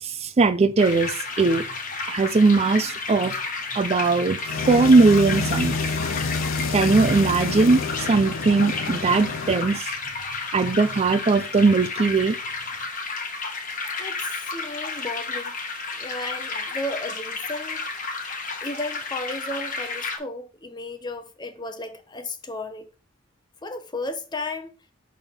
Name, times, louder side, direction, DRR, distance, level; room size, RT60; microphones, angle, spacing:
voice 1, 0.0-1.7 2.1-3.4 3.7-4.4 4.7-5.8 6.7-9.9 10.5-12.4, right 3 dB, 30° right, 0.4 m, -19 dB
sound 1, 0.8-20.2, left 4 dB, 40° left, 1.1 m, -32 dB
sound 2, 4.4-9.8, left 4 dB, 75° left, 0.5 m, -29 dB
voice 2, 14.0-15.6 16.0-17.9 18.6-22.9 23.6-24.7, left 2 dB, 20° left, 0.8 m, -34 dB
6.2 x 3.5 x 5.7 m
head